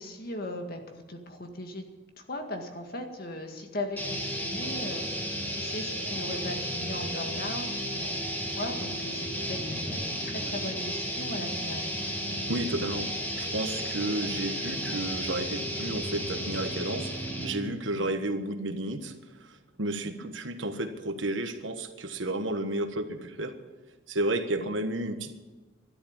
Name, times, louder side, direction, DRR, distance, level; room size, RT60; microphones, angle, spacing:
voice 1, 0.0-1.8 2.2-11.8 17.9-18.1 20.2-20.3 24.6-24.7, left 1 dB, 50° left, 4 dB, 1.9 m, -38 dB
sound 1, 4.0-17.7, equal, 10° left, 2.2 m, -33 dB
voice 2, 12.4-13.1 13.4-23.6 24.1-25.4, right 1 dB, 80° right, 7 dB, 1.5 m, -32 dB
13.0 x 11.5 x 8.9 m, 1.2 s
head